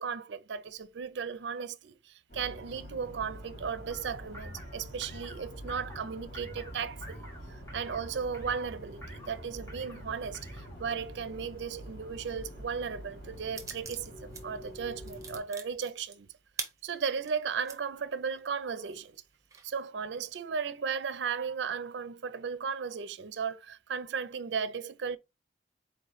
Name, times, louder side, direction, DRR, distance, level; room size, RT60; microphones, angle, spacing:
voice 1, 0.0-16.3 16.8-19.2 19.6-25.2, right 6 dB, 70° right, 0.4 m, -36 dB
sound 1, 2.3-15.4, equal, 50° left, 1.9 m, -47 dB
sound 2, 3.9-11.0, equal, 15° left, 1.5 m, -48 dB
sound 3, 13.6-14.4 14.8-17.8 18.3-18.4 18.8-19.7, right 5 dB, 20° right, 0.7 m, -42 dB
4.2 x 3.0 x 4.0 m
head